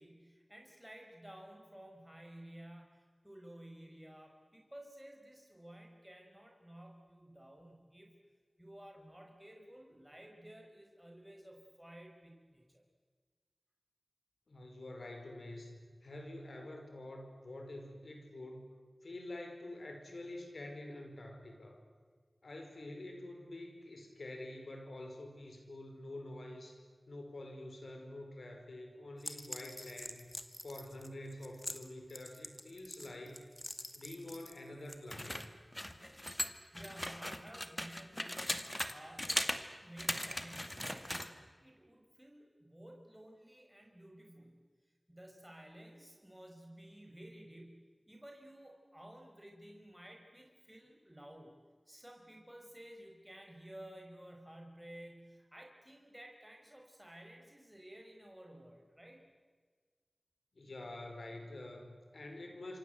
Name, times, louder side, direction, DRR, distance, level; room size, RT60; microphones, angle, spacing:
voice 1, 0.0-8.2 8.6-12.8 36.7-44.6 45.1-51.5 51.9-59.2, right 1 dB, 10° right, 1 dB, 5.4 m, -54 dB
voice 2, 14.5-18.7 19.0-21.8 22.4-26.8 27.1-30.3 30.6-33.4 33.9-35.5 60.5-62.8, left 1 dB, 90° left, 4 dB, 4.9 m, -47 dB
sound 1, 29.2-34.6 34.9-38.9 39.2-39.6 40.0-41.3, left 1 dB, 20° left, 2.2 m, -40 dB
27.0 x 26.0 x 8.0 m, 1.5 s
wide cardioid pair, 40°, 0 cm